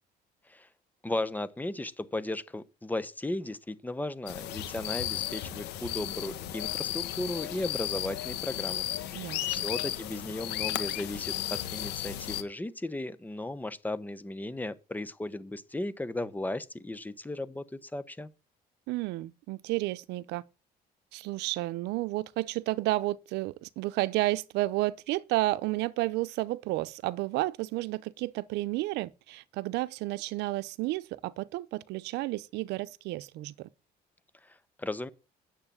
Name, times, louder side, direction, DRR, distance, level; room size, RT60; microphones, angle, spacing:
voice 1, 1.0-18.3 34.4-35.1, left 2 dB, 10° left, 0.9 m, -36 dB
sound 1, 4.3-12.4, left 13 dB, 80° left, 1.3 m, -34 dB
voice 2, 9.1-9.6 18.9-20.4 21.1-33.7, right 18 dB, 90° right, 0.7 m, -31 dB
9.7 x 7.5 x 7.0 m
cardioid pair, 110°, 17 cm